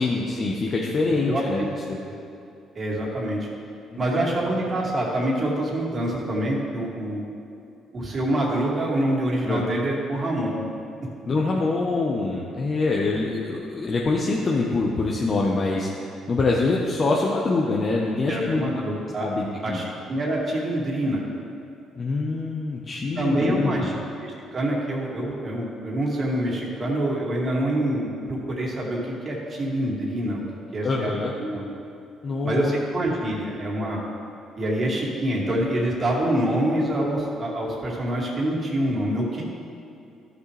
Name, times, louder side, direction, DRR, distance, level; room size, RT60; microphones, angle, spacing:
voice 1, 0.0-2.0 3.9-4.4 9.5-9.6 11.3-18.9 19.2-19.8 22.0-23.9 30.8-31.3 32.2-32.7, left 3 dB, 40° left, -2 dB, 1.0 m, -25 dB
voice 2, 1.3-1.7 2.1-2.2 2.7-3.4 4.0-7.3 7.9-10.6 18.3-19.3 19.6-21.2 23.2-30.4 30.7-31.7 32.4-34.0 34.6-39.4, right 1 dB, 40° right, -3 dB, 2.4 m, -26 dB
13.5 x 6.6 x 3.3 m, 2.5 s
supercardioid pair, 65°, 0 cm